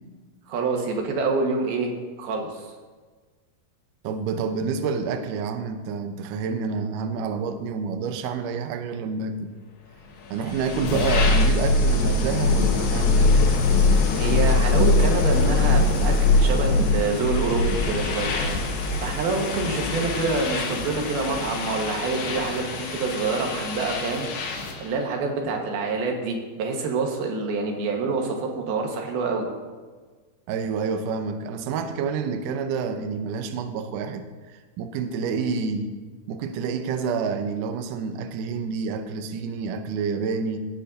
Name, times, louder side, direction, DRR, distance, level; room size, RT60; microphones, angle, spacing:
voice 1, 0.5-1.9 2.2-2.6 14.1-18.4 19.0-24.3 24.8-29.5, right 4 dB, 75° right, 2 dB, 3.1 m, -26 dB
voice 2, 4.0-9.5 10.3-13.4 30.5-34.3 34.8-35.9 36.3-40.6, right 5 dB, 90° right, 7 dB, 1.8 m, -28 dB
sound 1, 10.3-24.9, left 3 dB, 85° left, 3.3 m, -22 dB
18.0 x 8.7 x 2.6 m, 1.4 s
omnidirectional pair, 4.6 m